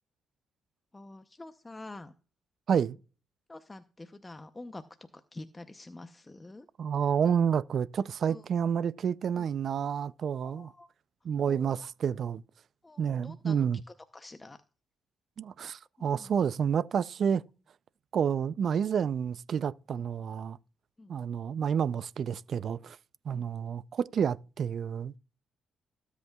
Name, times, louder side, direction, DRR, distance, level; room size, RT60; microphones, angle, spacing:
voice 1, 0.9-2.1 3.5-6.7 8.3-8.4 9.3-9.5 10.4-10.9 11.2-11.9 12.8-13.6 13.9-14.6 16.0-16.5 19.9-20.0 21.0-21.2 23.3-23.5, left 2 dB, 20° left, 0.7 m, -47 dB
voice 2, 6.8-10.7 11.2-12.4 13.0-13.8 15.4-17.4 18.1-20.6 21.1-23.0 23.3-25.1, right 7 dB, 55° right, 0.4 m, -29 dB
18.5 x 8.2 x 2.3 m
cardioid pair, 90°, 0 cm